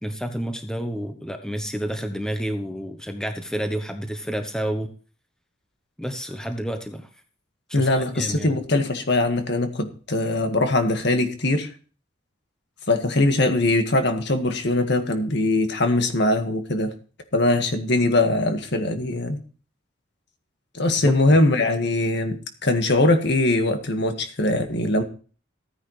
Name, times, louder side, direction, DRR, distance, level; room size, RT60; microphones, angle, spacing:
voice 1, 0.0-4.9 6.0-7.1 7.7-8.5 21.0-21.2, right 1 dB, 5° left, 6 dB, 1.0 m, -30 dB
voice 2, 7.7-11.7 12.9-16.9 17.3-19.4 20.7-25.0, left 2 dB, 60° left, 6 dB, 1.8 m, -21 dB
15.0 x 9.8 x 3.3 m, 0.39 s
head